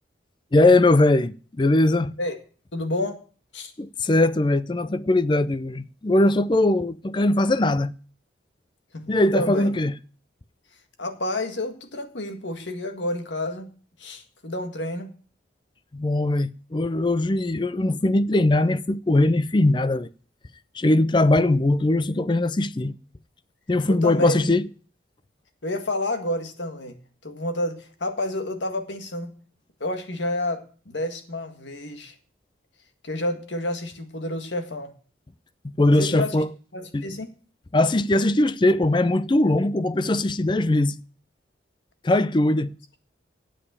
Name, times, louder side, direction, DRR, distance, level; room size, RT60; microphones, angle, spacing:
voice 1, 0.5-2.1 3.8-7.9 9.1-9.9 15.9-20.1 20.7-22.9 23.7-24.7 35.8-36.5 36.9-37.2 37.7-41.0 42.0-42.7, left 2 dB, 25° left, 0.4 m, -20 dB
voice 2, 2.7-3.2 3.5-3.7 8.9-9.7 11.0-13.7 14.0-15.1 23.9-24.5 25.6-27.0 27.2-29.3 29.8-32.1 33.0-34.9 36.0-36.4 36.7-37.3, left 1 dB, 75° left, 1.8 m, -29 dB
8.8 x 7.5 x 8.3 m
head